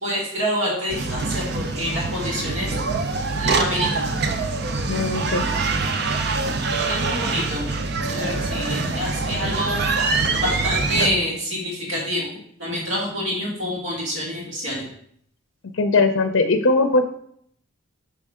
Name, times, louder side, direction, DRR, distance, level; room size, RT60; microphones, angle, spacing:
voice 1, 0.0-2.7 3.4-4.1 6.9-7.6 8.1-9.8 10.4-14.8, equal, 75° right, -4 dB, 1.9 m, -27 dB
sound 1, 0.9-11.1, right 3 dB, 55° right, 0.5 m, -24 dB
voice 2, 4.9-5.4 15.7-17.1, left 3 dB, 65° left, 6 dB, 0.5 m, -19 dB
6.6 x 5.3 x 3.6 m, 0.68 s
head